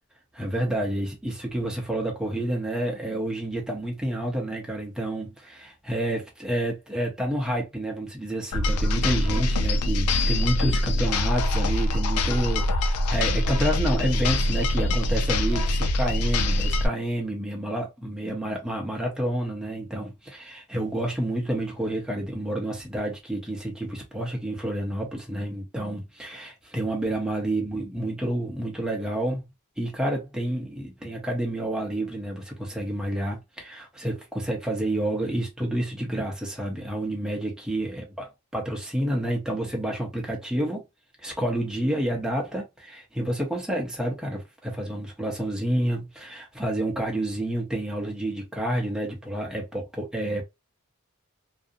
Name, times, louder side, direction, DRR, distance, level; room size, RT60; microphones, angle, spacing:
voice 1, 0.3-29.4 29.8-38.0 38.5-40.8 41.2-50.4, right 1 dB, 5° right, 0.7 m, -29 dB
sound 1, 8.5-16.9, left 1 dB, 85° left, 0.4 m, -24 dB
2.4 x 2.0 x 2.6 m
head